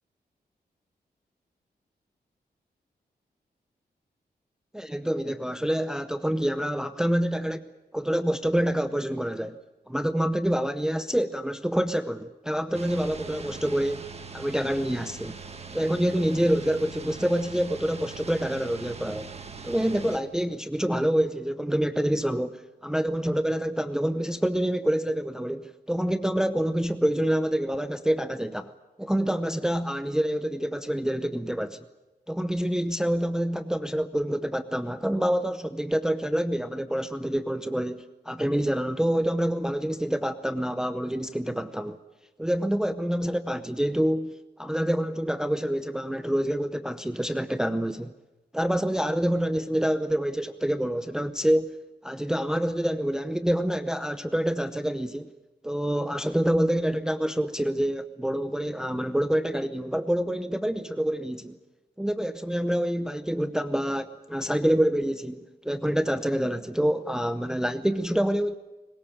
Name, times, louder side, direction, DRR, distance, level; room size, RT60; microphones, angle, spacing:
voice 1, 4.7-9.6 9.9-14.1 14.3-15.4 15.7-19.3 19.6-28.7 29.0-31.8 32.3-42.0 42.4-44.3 44.6-48.1 48.5-51.8 52.0-55.3 55.6-61.6 62.0-68.6, equal, 5° right, 0.7 m, -27 dB
sound 1, 12.7-20.2, right 5 dB, 40° right, 1.9 m, -42 dB
22.5 x 20.0 x 8.8 m
wide cardioid pair, 145°, 17 cm